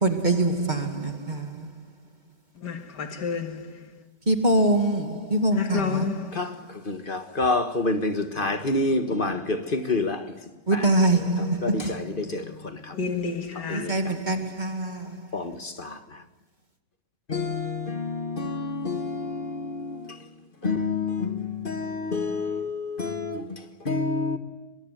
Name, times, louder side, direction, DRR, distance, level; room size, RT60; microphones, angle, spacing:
voice 1, 0.0-1.9 4.3-6.1 10.7-12.2 13.7-15.3, right 2 dB, 25° right, 2.3 m, -24 dB
voice 2, 2.6-4.1 5.5-6.4 12.9-14.1, left 5 dB, 75° left, 2.4 m, -31 dB
voice 3, 6.3-10.3 10.7-10.9 11.1-13.0 13.7-14.0 15.3-16.2 17.3-20.2 20.6-24.4, left 3 dB, 30° left, 1.7 m, -28 dB
23.5 x 22.5 x 9.4 m
omnidirectional pair, 1.8 m